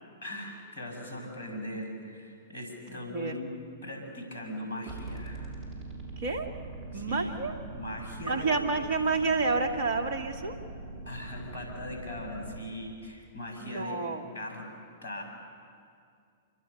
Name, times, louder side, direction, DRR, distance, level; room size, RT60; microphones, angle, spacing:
voice 1, 0.2-3.5 3.8-5.5 6.9-8.5 11.1-14.0 14.3-14.7 15.0-15.2, left 1 dB, 65° left, 2 dB, 7.3 m, -40 dB
voice 2, 2.9-3.3 6.2-6.5 6.9-7.5 8.3-10.5 13.6-14.2, right 3 dB, 55° right, 4 dB, 2.5 m, -29 dB
sound 1, 4.9-12.6, right 2 dB, 30° right, 5.6 m, -42 dB
27.0 x 23.0 x 6.9 m, 2.3 s
figure-of-eight pair, 105°, 0 cm